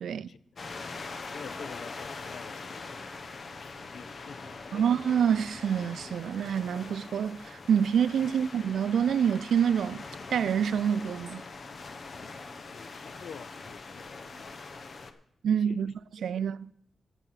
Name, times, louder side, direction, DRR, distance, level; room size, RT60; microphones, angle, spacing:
voice 1, 0.0-0.6 1.0-4.8 8.3-8.4 12.7-15.2 15.5-15.9 16.3-16.4, left 6 dB, 75° left, 0.5 m, -49 dB
sound 1, 0.6-15.1, left 3 dB, 50° left, 0.9 m, -43 dB
voice 2, 4.7-10.0 10.3-11.4 15.4-16.7, right 8 dB, 90° right, 0.3 m, -27 dB
12.0 x 8.0 x 5.7 m
wide cardioid pair, 105°, 0 cm